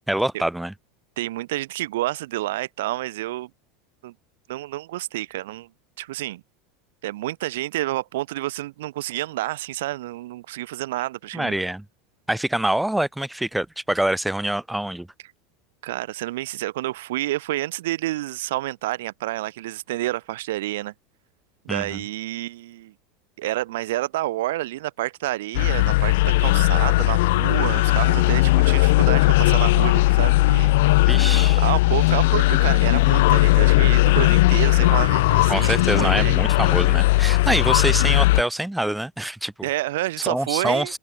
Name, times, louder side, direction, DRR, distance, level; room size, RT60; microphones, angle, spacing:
voice 1, 0.1-0.7 11.3-11.8 12.3-15.1 21.7-22.0 31.0-31.6 35.5-39.7 40.2-41.0, right 1 dB, 5° right, 4.9 m, -25 dB
voice 2, 1.2-3.5 4.0-4.1 4.5-5.7 6.0-6.4 7.0-11.6 15.8-20.9 21.6-22.9 23.4-30.7 31.6-36.5 39.6-40.9, right 16 dB, 80° right, 3.3 m, -29 dB
sound 1, 25.5-38.4, left 20 dB, 75° left, 3.0 m, -18 dB
supercardioid pair, 120°, 0 cm